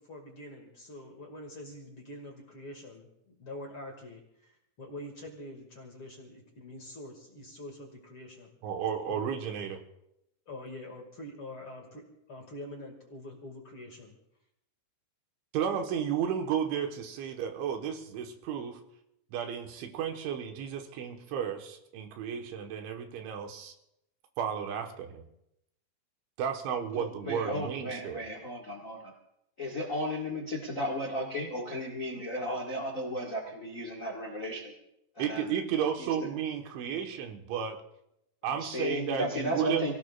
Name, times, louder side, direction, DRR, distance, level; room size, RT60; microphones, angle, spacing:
voice 1, 0.0-8.5 9.1-9.4 10.5-14.1, left 1 dB, 40° left, 1 dB, 2.1 m, -45 dB
voice 2, 8.6-9.8 15.5-18.8 19.3-23.7 24.4-25.2 26.4-28.2 35.2-37.8 38.4-39.9, right 8 dB, 85° right, 4 dB, 3.8 m, -33 dB
voice 3, 26.9-29.1 29.6-34.7 35.1-35.6 36.0-36.3 38.4-39.9, left 1 dB, 80° left, 0 dB, 0.7 m, -35 dB
28.5 x 18.0 x 2.5 m, 0.82 s
omnidirectional pair, 5.2 m